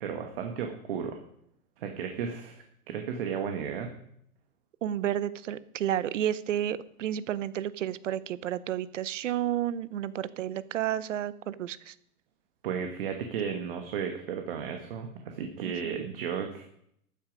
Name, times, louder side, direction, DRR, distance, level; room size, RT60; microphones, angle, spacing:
voice 1, 0.0-1.2 1.8-3.9 12.6-16.7, right 7 dB, 40° right, 5 dB, 1.3 m, -34 dB
voice 2, 4.8-11.9 15.6-16.0, right 11 dB, 55° right, 18 dB, 0.7 m, -31 dB
13.0 x 9.4 x 5.1 m, 0.71 s
hypercardioid pair, 170°, 45 cm